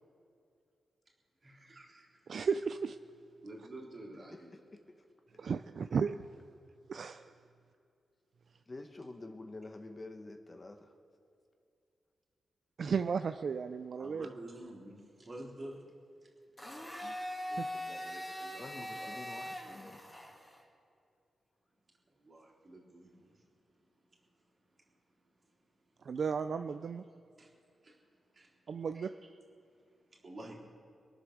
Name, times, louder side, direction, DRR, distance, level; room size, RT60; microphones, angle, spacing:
voice 1, 1.4-2.1 3.4-4.5 14.0-15.0 15.2-15.8 17.5-19.2 22.3-23.1 27.4-27.5 28.4-28.5 28.9-29.1 30.2-30.6, right 1 dB, 35° right, -3 dB, 3.3 m, -49 dB
voice 2, 2.3-3.0 5.4-6.2 6.9-7.3 12.8-14.3 17.0-17.1 17.6-17.7 26.0-27.0 28.7-29.1, right 6 dB, 55° right, 9 dB, 0.4 m, -34 dB
voice 3, 8.7-10.9 18.6-20.1, left 2 dB, 25° left, 5 dB, 1.0 m, -47 dB
Domestic sounds home sounds, 16.6-20.6, left 1 dB, 10° left, 2.4 m, -41 dB
23.0 x 8.1 x 6.5 m, 2.5 s
wide cardioid pair, 125°, 0 cm